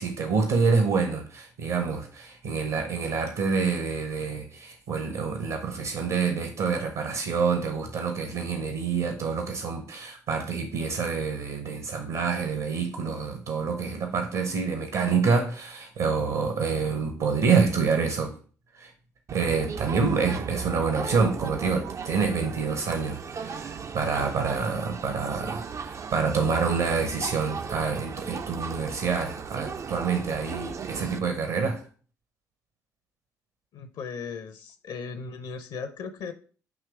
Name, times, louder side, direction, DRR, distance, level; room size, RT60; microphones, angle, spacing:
voice 1, 0.0-18.3 18.7-18.9 19.3-31.8, right 5 dB, 60° right, 0.9 m, -27 dB
Crowd, 19.3-31.2, right 6 dB, 35° right, 0.4 m, -36 dB
voice 2, 33.7-36.3, left 5 dB, 55° left, 0.7 m, -37 dB
7.2 x 3.0 x 4.7 m
figure-of-eight pair, 45°, 9 cm